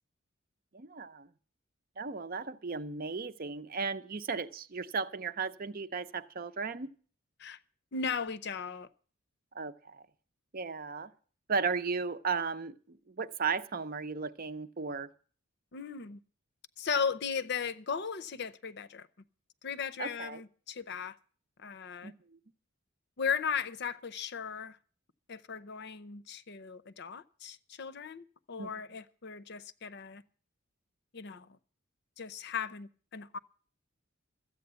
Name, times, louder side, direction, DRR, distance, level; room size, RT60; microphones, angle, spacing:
voice 1, 0.7-1.3 2.0-6.9 9.5-10.0 10.5-11.1 11.5-15.1 20.0-20.4 22.0-22.1 28.6-28.7, right 5 dB, 45° right, 0.7 m, -35 dB
voice 2, 7.9-8.9 15.7-16.2 16.8-19.1 19.6-21.2 21.6-22.1 23.2-24.8 25.3-30.2 31.1-31.6 32.2-33.4, left 6 dB, 55° left, 0.7 m, -37 dB
13.5 x 8.6 x 8.1 m
head